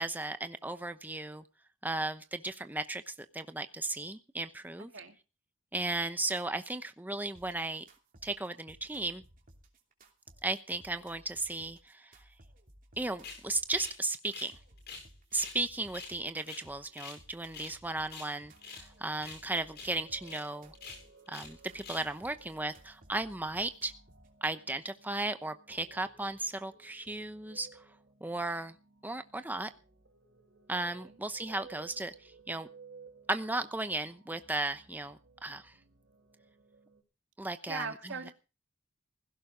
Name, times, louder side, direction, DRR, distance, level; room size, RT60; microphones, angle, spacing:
voice 1, 0.0-1.4 1.8-4.9 5.7-7.8 8.2-9.2 10.4-12.1 13.0-14.5 15.3-20.7 21.3-23.9 24.4-27.7 28.2-28.7 29.0-29.7 30.7-32.7 33.3-35.7 37.4-37.9, right 2 dB, 10° right, 9 dB, 0.8 m, -35 dB
sound 1, 7.3-24.3, right 1 dB, 45° right, 2.9 m, -59 dB
sound 2, 13.2-13.4 13.8-14.0 14.2-15.1 15.4-15.6 15.9-17.2 17.5-17.8 18.0-18.9 19.2-19.4 19.7-19.9 20.2-20.4 20.7-21.5 21.8-22.1, left 4 dB, 60° left, 7.8 m, -46 dB
sound 3, 18.4-37.0, right 5 dB, 65° right, 4.1 m, -59 dB
voice 2, 37.7-38.3, right 5 dB, 85° right, 5 dB, 2.5 m, -40 dB
16.5 x 16.5 x 3.8 m, 0.32 s
head